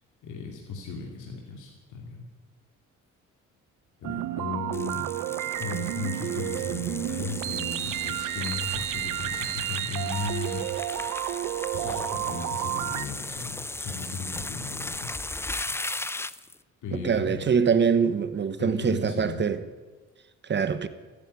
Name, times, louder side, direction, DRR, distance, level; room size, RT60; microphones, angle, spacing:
voice 1, 0.2-2.3 4.0-5.1 5.5-11.3 11.7-15.1 15.6-16.0 16.8-17.6 18.6-19.5, left 4 dB, 75° left, 2.6 m, -36 dB
sound 1, 4.0-13.1, right 14 dB, 80° right, 0.7 m, -31 dB
sound 2, 4.7-16.6, left 2 dB, 10° left, 0.5 m, -37 dB
voice 2, 16.9-19.6 20.5-20.9, right 6 dB, 35° right, 1.2 m, -24 dB
14.5 x 10.0 x 9.8 m
cardioid pair, 90°, 30 cm